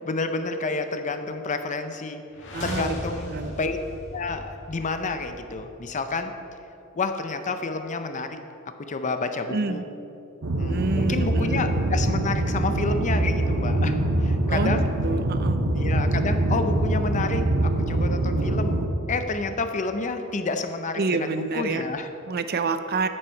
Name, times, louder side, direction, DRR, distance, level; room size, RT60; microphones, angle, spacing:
voice 1, 0.0-2.2 2.6-3.8 4.1-6.3 6.9-8.4 8.9-9.8 10.6-14.9 15.7-18.8 19.1-22.1, left 3 dB, 35° left, 8 dB, 0.6 m, -29 dB
sound 1, 2.3-6.3, left 1 dB, 60° left, 1.8 m, -38 dB
voice 2, 2.5-3.0 3.3-3.5 9.5-9.8 10.7-11.6 14.5-15.6 21.0-21.8 22.3-23.1, right 3 dB, 50° right, 10 dB, 0.5 m, -28 dB
sound 2, 10.4-18.9, right 1 dB, 65° right, 0.9 m, -24 dB
9.9 x 8.8 x 4.5 m, 2.8 s
head